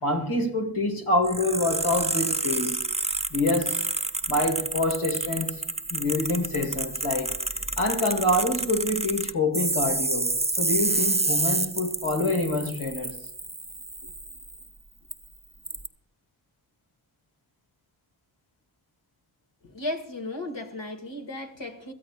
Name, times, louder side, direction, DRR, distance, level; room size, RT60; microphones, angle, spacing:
voice 1, 0.0-2.8 3.3-3.8 4.3-5.6 5.9-7.4 7.8-13.2, left 2 dB, 85° left, 1.7 m, -26 dB
sound 1, 1.2-14.6 15.1-15.2 15.6-15.9, right 2 dB, 15° right, 0.6 m, -29 dB
voice 2, 19.6-21.9, left 1 dB, 65° left, 2.1 m, -35 dB
22.0 x 13.5 x 2.4 m
wide cardioid pair, 50°, 48 cm